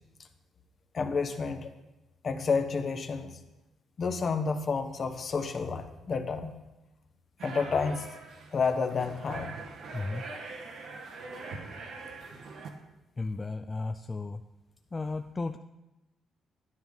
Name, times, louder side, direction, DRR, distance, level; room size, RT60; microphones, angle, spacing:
voice 1, 0.9-1.7 2.2-3.4 4.0-6.5 7.4-8.1 8.5-9.6, left 5 dB, 45° left, 7 dB, 1.0 m, -30 dB
sound 1, 7.4-12.7, right 3 dB, 75° right, 1.4 m, -43 dB
voice 2, 9.9-10.2 13.2-14.4 14.9-15.6, left 3 dB, 25° left, 6 dB, 0.4 m, -34 dB
10.5 x 9.8 x 3.9 m, 0.99 s
cardioid pair, 90°, 0 cm